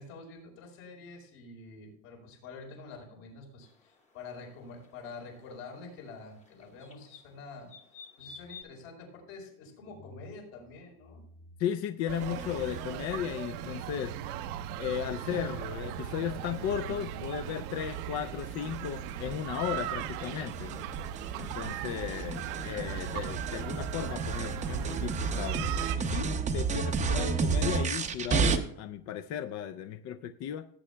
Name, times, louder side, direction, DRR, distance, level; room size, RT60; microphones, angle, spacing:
voice 1, 0.0-7.7 8.2-11.5, left 3 dB, 70° left, 1 dB, 4.5 m, -47 dB
sound 1, 3.6-8.6, left 5 dB, 15° left, 0.9 m, -53 dB
voice 2, 11.6-14.1 14.8-20.8 21.4-30.6, left 9 dB, 40° left, 9 dB, 0.4 m, -35 dB
sound 2, 12.1-26.0, right 11 dB, 85° right, 0.9 m, -38 dB
sound 3, 12.2-14.0 16.8-28.6, right 5 dB, 20° right, 0.6 m, -33 dB
17.5 x 8.5 x 2.2 m, 0.66 s
cardioid pair, 160°, 42 cm